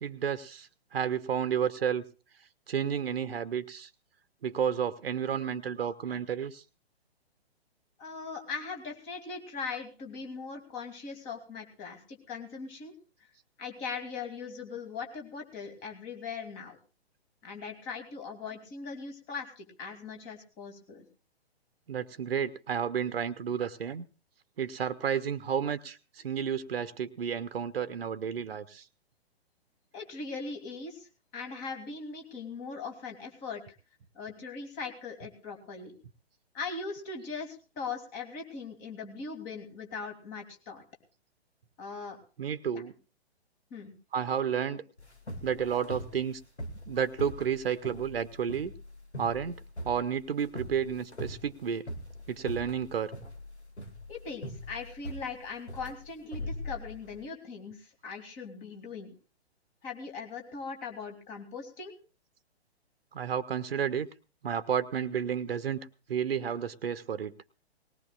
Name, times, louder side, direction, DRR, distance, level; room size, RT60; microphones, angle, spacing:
voice 1, 0.0-2.0 2.7-3.9 4.4-6.6 21.9-24.0 24.6-28.8 42.4-42.9 44.1-44.8 45.4-46.4 46.9-48.7 49.2-49.6 49.8-51.8 52.3-53.1 63.1-64.1 64.4-65.8 66.1-67.3, right 8 dB, 60° right, 13 dB, 0.9 m, -31 dB
voice 2, 8.0-12.9 13.6-16.8 17.4-21.1 29.9-31.1 31.3-33.6 34.1-35.9 36.5-40.8 41.8-42.2 42.7-42.8 43.7-43.9 54.1-59.1 59.8-61.9, left 4 dB, 25° left, 4 dB, 2.7 m, -40 dB
sound 1, 45.0-57.2, equal, 85° left, 2.2 m, -41 dB
19.5 x 17.5 x 2.4 m, 0.35 s
figure-of-eight pair, 125°, 32 cm